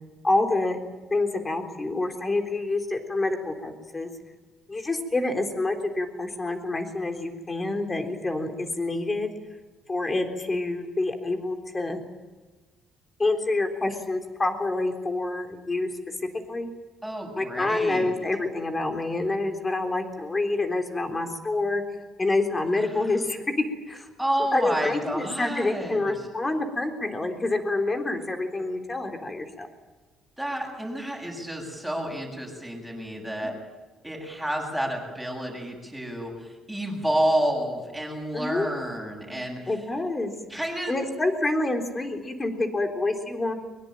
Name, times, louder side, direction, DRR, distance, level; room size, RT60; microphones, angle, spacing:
voice 1, 0.2-0.8 1.1-4.1 4.7-9.3 9.9-12.0 13.2-15.9 16.5-16.7 17.4-21.8 22.2-23.5 23.9-24.1 24.5-29.7 38.3-38.7 39.7-40.3 40.9-43.5, left 2 dB, 20° left, 5 dB, 3.7 m, -27 dB
voice 2, 17.0-18.1 24.2-26.1 30.4-33.5 34.0-39.7 40.5-40.9, right 1 dB, ahead, 0 dB, 7.8 m, -30 dB
23.0 x 23.0 x 9.0 m, 1.3 s
cardioid pair, 130°, 0 cm